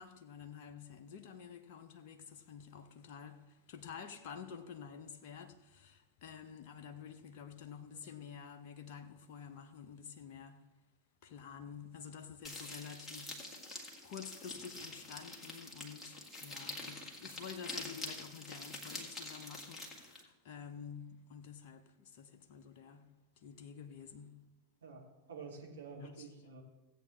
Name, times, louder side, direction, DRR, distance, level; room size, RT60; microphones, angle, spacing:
voice 1, 0.0-10.8 11.2-24.5 25.9-26.3, left 7 dB, 45° left, 0.7 m, -50 dB
sound 1, 12.4-20.2, left 2 dB, 10° left, 1.9 m, -46 dB
voice 2, 24.8-26.6, right 4 dB, 70° right, 2.2 m, -49 dB
16.0 x 8.3 x 3.2 m
figure-of-eight pair, 90°, 0 cm